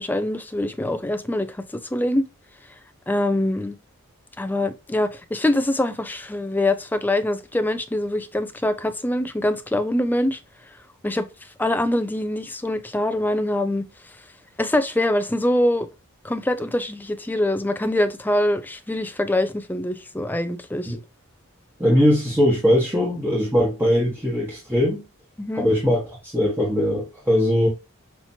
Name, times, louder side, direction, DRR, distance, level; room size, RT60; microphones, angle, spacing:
voice 1, 0.0-2.3 3.1-3.8 4.4-10.4 11.0-11.3 11.6-13.9 14.6-15.9 16.2-20.9 25.4-25.7, left 1 dB, 10° left, 0.4 m, -24 dB
voice 2, 21.8-25.0 25.5-27.7, equal, 10° right, 1.2 m, -20 dB
5.7 x 2.9 x 2.7 m
head